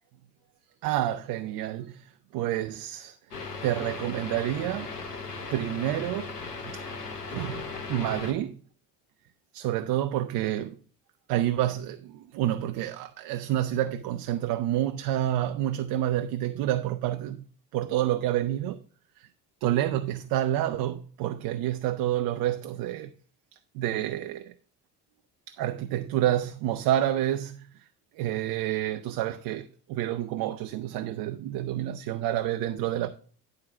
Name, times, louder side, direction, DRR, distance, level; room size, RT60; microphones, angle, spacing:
voice 1, 0.8-2.1 2.3-3.1 3.6-4.9 5.5-6.3 6.7-6.8 7.3-8.6 9.5-10.8 11.3-17.4 17.7-18.8 19.6-23.1 23.7-24.5 25.6-27.7 28.2-33.1, right 12 dB, 50° right, 0.7 m, -28 dB
sound 1, 3.3-8.3, left 4 dB, 85° left, 1.1 m, -37 dB
10.5 x 3.9 x 6.0 m
figure-of-eight pair, 55°, 46 cm